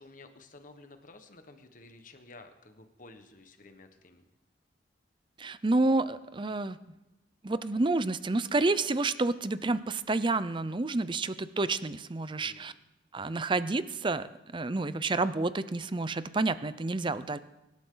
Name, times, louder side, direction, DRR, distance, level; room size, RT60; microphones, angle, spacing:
voice 1, 0.0-4.2 12.2-12.7, left 2 dB, 45° left, 7 dB, 1.4 m, -53 dB
voice 2, 5.4-6.8 7.4-12.7 13.1-14.3 14.5-17.4, right 2 dB, 25° right, 14 dB, 0.5 m, -29 dB
24.5 x 11.5 x 3.9 m, 0.98 s
head